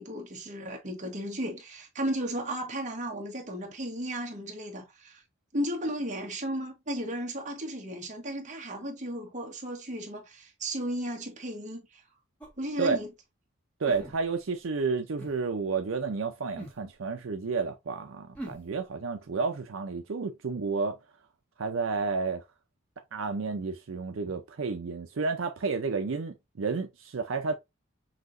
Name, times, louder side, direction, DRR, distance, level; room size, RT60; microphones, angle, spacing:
voice 1, 0.0-5.2 5.5-12.0 12.6-13.1, right 1 dB, 35° right, 1.2 m, -34 dB
sound 1, 12.4-12.6 13.8-14.5 15.2-15.4 16.6-16.8 18.3-18.7, right 1 dB, 5° left, 1.5 m, -42 dB
voice 2, 13.8-21.0 21.6-22.4 23.1-27.5, right 4 dB, 70° right, 0.5 m, -31 dB
5.9 x 2.8 x 2.5 m
head